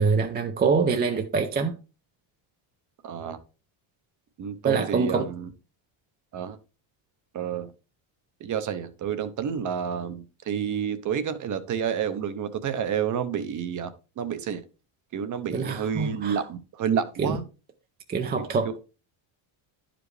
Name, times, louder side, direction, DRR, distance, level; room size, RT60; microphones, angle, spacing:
voice 1, 0.0-1.8 4.6-5.3 15.5-16.4 17.2-17.4 18.1-18.8, right 5 dB, 20° right, 0.5 m, -25 dB
voice 2, 3.0-3.4 4.4-5.5 6.3-6.6 7.3-7.7 8.4-14.6 15.1-17.4 18.4-18.8, right 8 dB, 40° right, 0.8 m, -30 dB
11.0 x 5.1 x 3.2 m
cardioid pair, 150°, 49 cm